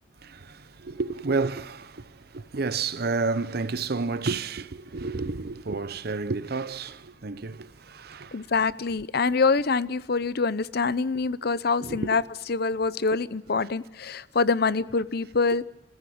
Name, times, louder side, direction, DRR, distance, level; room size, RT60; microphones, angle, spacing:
voice 1, 0.2-8.5 11.8-12.2, right 4 dB, 55° right, 0.8 m, -31 dB
voice 2, 8.3-12.2 12.5-15.6, left 4 dB, 55° left, 0.7 m, -25 dB
27.5 x 15.0 x 8.6 m
head